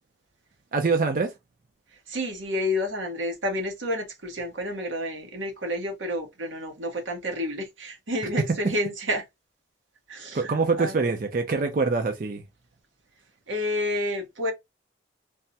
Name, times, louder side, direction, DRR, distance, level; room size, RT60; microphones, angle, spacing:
voice 1, 0.7-1.3 10.3-12.4, right 4 dB, 45° right, 0.4 m, -24 dB
voice 2, 2.1-9.2 10.1-11.0 13.5-14.5, left 1 dB, 85° right, 1.2 m, -30 dB
3.4 x 2.1 x 2.7 m
head